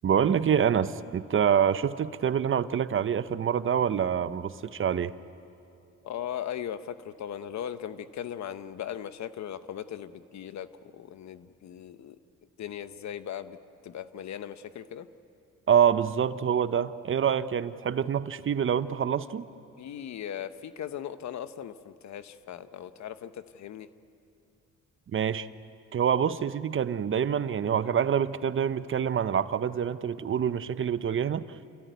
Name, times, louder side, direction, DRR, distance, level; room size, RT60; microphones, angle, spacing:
voice 1, 0.0-5.1 15.7-19.5 25.1-25.5 25.9-31.6, right 8 dB, 45° right, 14 dB, 0.7 m, -26 dB
voice 2, 6.0-10.7 10.9-12.2 12.6-13.6 13.8-15.1 19.8-23.9, left 9 dB, 65° left, 12 dB, 1.0 m, -38 dB
28.5 x 15.0 x 9.4 m, 2.7 s
cardioid pair, 90°, 30 cm